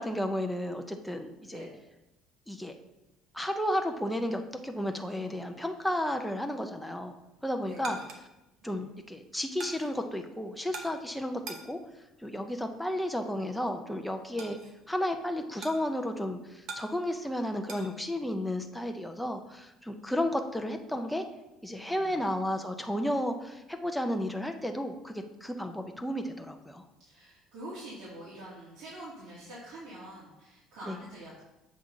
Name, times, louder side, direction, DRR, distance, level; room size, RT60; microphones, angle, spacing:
voice 1, 0.0-1.7 2.5-2.7 3.3-7.2 7.4-8.0 8.6-11.8 12.2-14.6 14.9-21.2 21.6-26.8 30.9-31.0, left 1 dB, ahead, 4 dB, 0.5 m, -33 dB
voice 2, 1.4-1.7 7.7-8.0 8.6-8.8 20.0-20.1 21.8-22.1 27.1-31.4, right 1 dB, 80° right, -8 dB, 2.2 m, -46 dB
sound 1, 7.2-17.9, right 3 dB, 45° right, 1.0 m, -47 dB
7.2 x 5.4 x 3.8 m, 0.97 s
cardioid pair, 160°, 0 cm